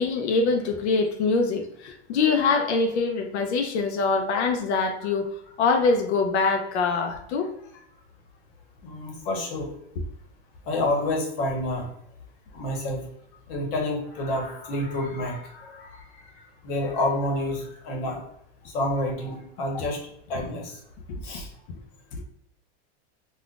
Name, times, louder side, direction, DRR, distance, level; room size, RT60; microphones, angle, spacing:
voice 1, 0.0-5.3 5.6-7.5 21.1-21.2 22.1-22.2, left 4 dB, 85° left, 4 dB, 0.6 m, -24 dB
voice 2, 8.8-9.7 10.7-11.9 12.5-13.0 13.5-16.3 16.6-18.2 18.6-20.0 20.3-20.8 21.2-21.5, left 1 dB, 60° left, 0 dB, 1.1 m, -29 dB
3.6 x 2.4 x 2.4 m, 0.75 s
supercardioid pair, 155°, 32 cm